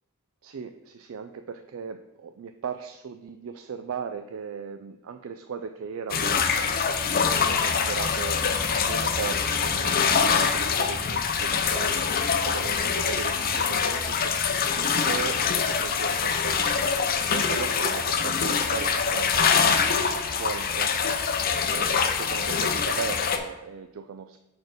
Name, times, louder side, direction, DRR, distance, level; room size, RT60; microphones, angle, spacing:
voice 1, 0.4-7.0 7.4-8.4 8.8-12.1 12.4-21.2 21.7-24.4, right 6 dB, 70° right, 8 dB, 0.4 m, -37 dB
sound 1, 6.1-23.4, left 6 dB, 45° left, 0.6 m, -24 dB
6.0 x 4.4 x 4.9 m, 1.0 s
head